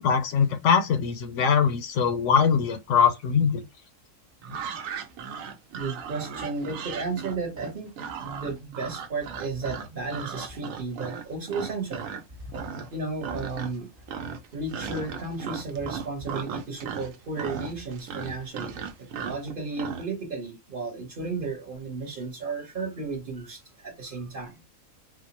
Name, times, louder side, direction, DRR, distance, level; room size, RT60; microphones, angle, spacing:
voice 1, 0.0-3.6, left 6 dB, 70° left, 0.9 m, -22 dB
sound 1, 4.4-12.2 12.5-13.0 13.2-13.8 14.1-20.1, right 6 dB, 80° right, 1.0 m, -36 dB
voice 2, 5.7-7.9 8.2-12.0 12.4-12.6 12.9-13.9 14.5-24.6, right 3 dB, 45° right, 1.1 m, -34 dB
4.3 x 2.1 x 2.8 m
omnidirectional pair, 1.4 m